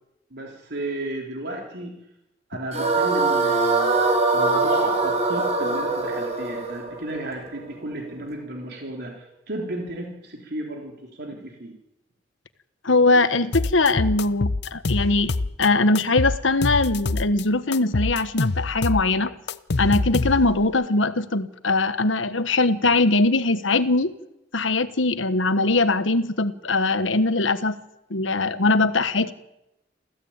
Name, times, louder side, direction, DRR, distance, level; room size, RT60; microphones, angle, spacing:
voice 1, 0.3-1.9 2.5-11.7, right 1 dB, 60° right, 0 dB, 3.8 m, -34 dB
sound 1, 2.7-7.9, right 3 dB, 35° right, 4.7 m, -23 dB
voice 2, 12.8-15.3 15.6-19.3 19.8-24.1 24.5-27.8 28.1-29.3, left 2 dB, 80° left, 12 dB, 1.4 m, -21 dB
sound 2, 13.5-15.7 15.9-17.4 17.7-20.7, left 3 dB, 60° left, 0.8 m, -25 dB
28.0 x 15.5 x 8.9 m, 0.89 s
head